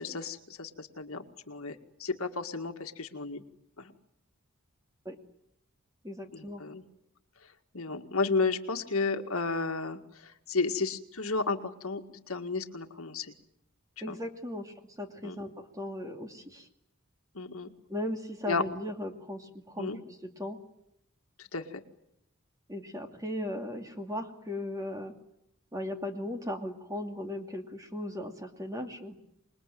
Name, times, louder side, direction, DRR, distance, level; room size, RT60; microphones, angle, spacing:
voice 1, 0.0-3.4 3.8-3.9 6.3-6.8 7.7-13.3 14.1-14.2 15.2-15.4 17.4-17.7 18.5-18.6 19.8-20.0 21.4-21.8, left 4 dB, 70° left, 6 dB, 2.0 m, -33 dB
voice 2, 6.0-6.6 14.0-16.7 17.9-20.6 22.7-25.1 25.7-29.2, left 1 dB, 15° right, 5 dB, 2.5 m, -37 dB
27.0 x 21.0 x 9.2 m, 0.80 s
head